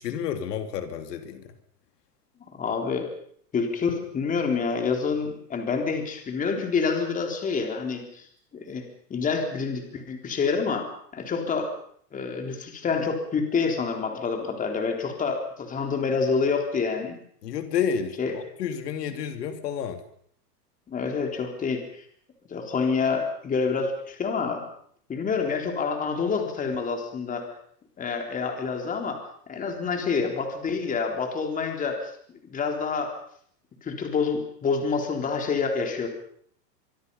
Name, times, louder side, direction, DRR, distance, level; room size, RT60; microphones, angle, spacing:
voice 1, 0.0-1.4 17.4-20.0, left 8 dB, 70° left, 8 dB, 3.0 m, -30 dB
voice 2, 2.5-3.1 3.5-8.3 8.5-10.9 11.1-11.7 12.1-17.2 18.2-18.4 20.9-21.8 22.5-24.6 25.1-27.5 28.0-32.1 32.4-33.2 33.8-36.1, left 5 dB, 15° left, 4 dB, 3.8 m, -27 dB
24.0 x 24.0 x 5.6 m, 0.62 s
supercardioid pair, 155°, 49 cm